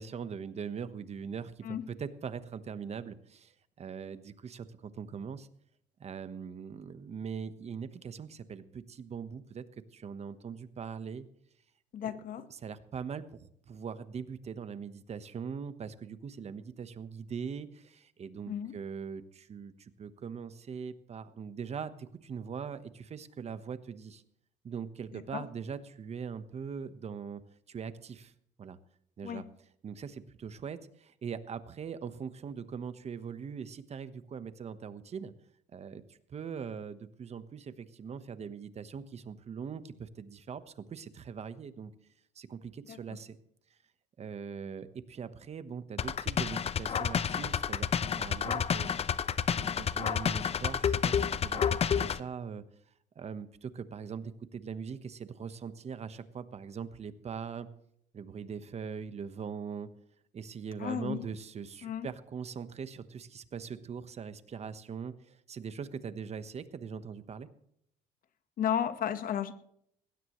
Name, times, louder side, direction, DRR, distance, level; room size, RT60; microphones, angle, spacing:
voice 1, 0.0-5.5 6.0-9.6 9.9-11.3 12.0-12.1 12.5-24.2 24.6-27.4 27.7-28.3 28.6-28.8 29.2-29.4 29.8-35.3 35.7-41.9 42.3-43.4 44.2-48.9 49.5-52.6 53.1-57.7 58.1-59.9 60.3-67.5, right 6 dB, 40° right, 1.2 m, -41 dB
voice 2, 11.9-12.5 18.5-18.8 25.1-25.4 29.2-29.4 42.9-43.2 60.8-61.2 61.8-62.1 68.6-69.5, left 9 dB, 55° left, 1.4 m, -34 dB
red percussion, 46.0-52.2, left 7 dB, 35° left, 0.7 m, -30 dB
20.0 x 16.5 x 3.2 m
cardioid pair, 110°, 17 cm